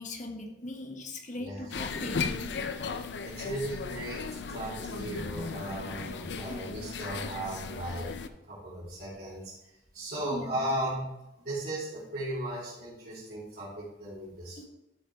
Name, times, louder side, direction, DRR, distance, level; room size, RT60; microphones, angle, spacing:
voice 1, 0.0-2.6 6.4-6.6 10.2-10.8 14.6-14.7, left 2 dB, 45° left, 3 dB, 1.4 m, -40 dB
voice 2, 1.3-1.8 3.2-11.0 11.4-14.6, right 1 dB, 60° right, -9 dB, 3.4 m, -37 dB
sound 1, 1.7-8.3, left 5 dB, 75° left, 0.6 m, -36 dB
12.5 x 6.4 x 3.5 m, 0.92 s
head